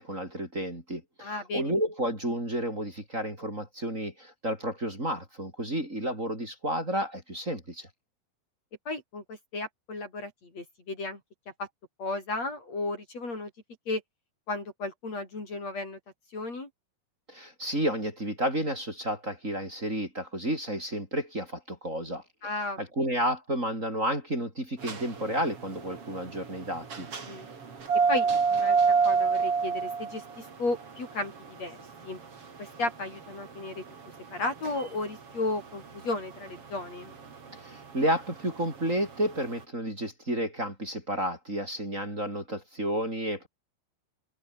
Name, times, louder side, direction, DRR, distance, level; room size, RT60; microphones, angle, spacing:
voice 1, 0.0-7.9 17.3-22.2 22.8-27.1 37.6-43.5, equal, 20° right, 7.2 m, -31 dB
voice 2, 1.2-1.7 8.9-11.2 11.6-11.7 12.0-13.5 13.9-14.0 14.5-16.0 16.3-16.7 22.4-22.8 27.2-27.5 28.1-28.8 29.0-31.8 32.0-32.2 32.6-33.8 34.3-37.1, left 2 dB, 40° left, 7.2 m, -34 dB
sound 1, 24.8-39.5, right 5 dB, 40° right, 4.0 m, -29 dB
omnidirectional pair, 4.5 m